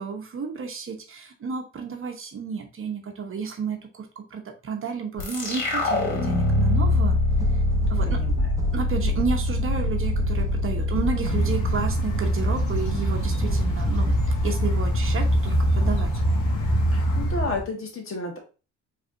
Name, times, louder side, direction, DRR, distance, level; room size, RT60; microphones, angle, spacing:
voice 1, 0.0-7.2 7.9-8.2 8.7-14.1 14.4-16.2, right 5 dB, 45° right, 4 dB, 1.0 m, -32 dB
sound 1, 5.2-12.5, left 2 dB, 90° left, 1.8 m, -24 dB
sound 2, 7.3-12.0 13.4-14.3 15.8-16.2, left 1 dB, 10° right, 0.9 m, -31 dB
voice 2, 8.0-8.5 16.9-18.4, left 3 dB, 45° left, 2 dB, 1.6 m, -32 dB
sound 3, 11.2-17.6, equal, 70° left, 1.4 m, -23 dB
4.9 x 3.4 x 2.6 m, 0.33 s
cardioid pair, 90°, 30 cm